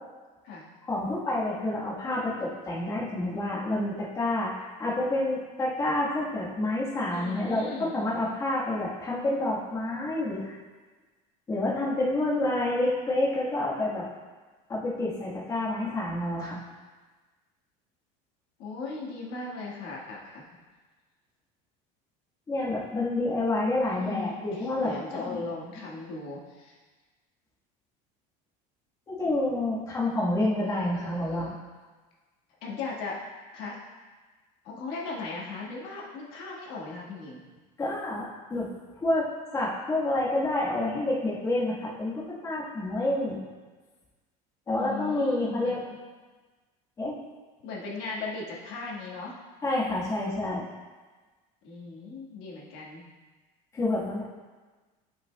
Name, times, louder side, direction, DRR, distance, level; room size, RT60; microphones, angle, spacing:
voice 1, 0.9-10.5 11.5-14.0 14.7-16.6 22.5-25.4 25.8-25.9 29.1-31.5 37.8-38.7 39.0-39.3 39.5-43.4 44.7-45.8 47.0-47.2 49.6-50.7 53.7-54.2, left 2 dB, 20° left, -7 dB, 1.3 m, -28 dB
voice 2, 7.1-7.9 18.6-20.4 23.8-26.8 30.6-31.5 32.6-33.2 33.5-33.8 34.6-37.4 44.8-46.0 47.6-49.4 51.6-53.0, left 3 dB, 60° left, -4 dB, 1.5 m, -38 dB
11.0 x 5.7 x 2.2 m, 1.3 s
cardioid pair, 170°, 17 cm